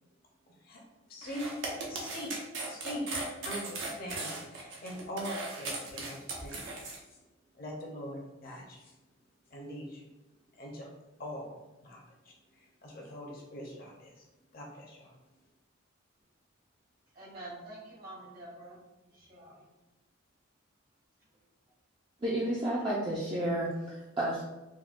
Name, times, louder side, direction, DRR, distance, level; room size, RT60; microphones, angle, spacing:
voice 1, 1.1-6.6 7.5-8.9 9.5-10.0 10.6-10.9 11.2-14.2 14.5-15.1, equal, 45° left, -1 dB, 0.6 m, -42 dB
sound 1, 1.2-7.0, right 2 dB, 65° right, 0.6 m, -38 dB
voice 2, 17.1-18.8 19.1-19.7, right 2 dB, 45° right, -4 dB, 1.0 m, -47 dB
voice 3, 22.2-24.4, right 1 dB, 25° right, -7 dB, 0.4 m, -31 dB
3.5 x 2.2 x 2.4 m, 1.1 s
head